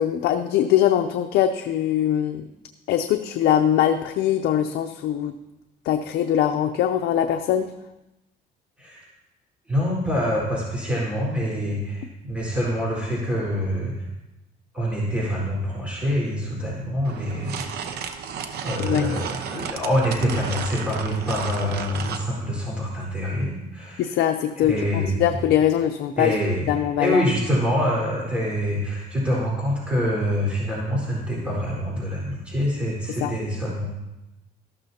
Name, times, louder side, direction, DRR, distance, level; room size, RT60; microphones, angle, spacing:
voice 1, 0.0-2.4 2.9-5.3 5.8-7.7 18.8-19.2 24.0-26.3 26.7-27.2 33.2-33.3, left 10 dB, 75° left, 5 dB, 0.6 m, -22 dB
voice 2, 9.7-14.1 14.7-18.1 18.6-24.2 24.6-25.2 26.1-33.8, equal, 5° right, -5 dB, 4.2 m, -26 dB
sound 1, 17.0-22.3, right 7 dB, 70° right, 0.9 m, -33 dB
13.5 x 12.0 x 2.8 m, 0.98 s
cardioid pair, 110°, 17 cm